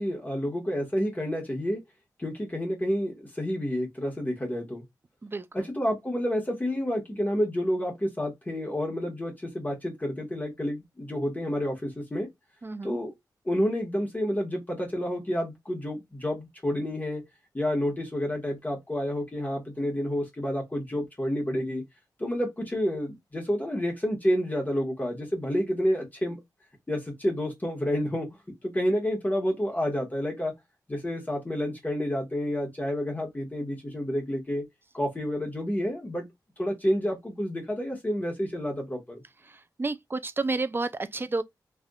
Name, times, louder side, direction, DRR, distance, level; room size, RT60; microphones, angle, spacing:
voice 1, 0.0-1.8 2.2-4.8 5.5-12.3 12.8-13.1 13.4-17.2 17.5-21.8 22.2-26.4 26.9-28.3 28.6-30.5 30.9-34.6 34.9-36.2 36.6-39.2, equal, 20° left, 1.3 m, -29 dB
voice 2, 5.2-5.7 12.6-13.0 39.4-41.4, right 3 dB, 30° right, 0.4 m, -31 dB
3.4 x 2.5 x 2.2 m
wide cardioid pair, 75°, 7 cm